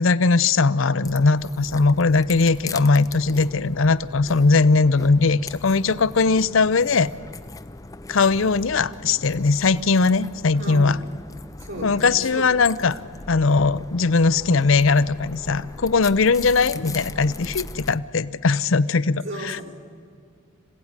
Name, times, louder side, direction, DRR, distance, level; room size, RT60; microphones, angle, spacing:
voice 1, 0.0-7.1 8.1-11.0 11.8-13.0 13.3-19.6, left 4 dB, 70° left, 16 dB, 0.7 m, -19 dB
sound 1, 1.0-18.0, left 3 dB, 15° left, 0.5 m, -40 dB
voice 2, 10.5-11.0 11.6-12.5 12.8-13.1 19.1-19.6, right 1 dB, 65° right, 1 dB, 5.0 m, -35 dB
26.5 x 16.5 x 9.7 m, 2.2 s
head